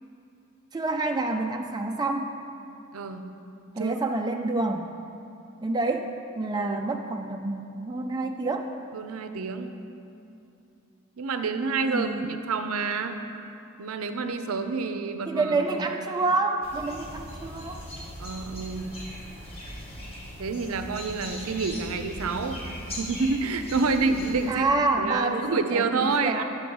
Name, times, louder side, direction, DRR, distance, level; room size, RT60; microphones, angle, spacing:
voice 1, 0.7-2.3 3.8-4.9 5.6-6.1 6.4-8.7 11.9-12.3 15.3-17.8 24.5-26.4, right 3 dB, 20° right, 3 dB, 0.3 m, -28 dB
voice 2, 2.9-3.3 3.8-4.0 6.6-6.8 8.9-9.7 11.2-13.3 13.8-15.9 18.2-18.9 20.4-22.6 23.0-24.7 25.0-26.4, right 4 dB, 70° right, 8 dB, 0.5 m, -28 dB
sound 1, 16.6-24.6, equal, 25° left, 1.7 m, -39 dB
9.4 x 7.0 x 4.6 m, 2.7 s
head